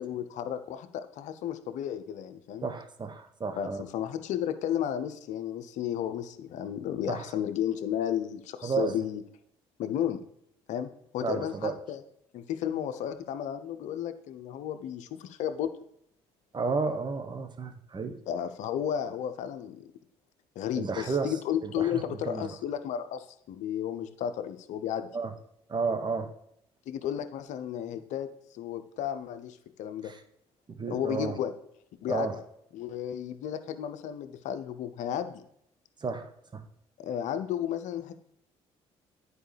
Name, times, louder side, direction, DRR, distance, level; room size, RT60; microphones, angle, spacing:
voice 1, 0.0-2.6 3.6-9.2 9.8-10.2 10.7-12.0 12.3-15.7 18.3-19.8 20.6-25.1 26.9-30.1 30.9-31.5 32.0-32.3 32.7-35.4 37.0-38.2, left 10 dB, 70° left, 11 dB, 0.6 m, -33 dB
voice 2, 2.6-3.8 7.1-7.3 8.6-9.0 11.2-11.8 16.5-18.2 20.7-21.3 21.6-22.5 25.1-25.3 25.7-26.3 30.0-30.2 30.8-31.4 32.1-32.4 36.0-36.6, right 4 dB, 35° right, 7 dB, 1.1 m, -32 dB
10.0 x 4.8 x 3.3 m, 0.75 s
hypercardioid pair, 55°, 13 cm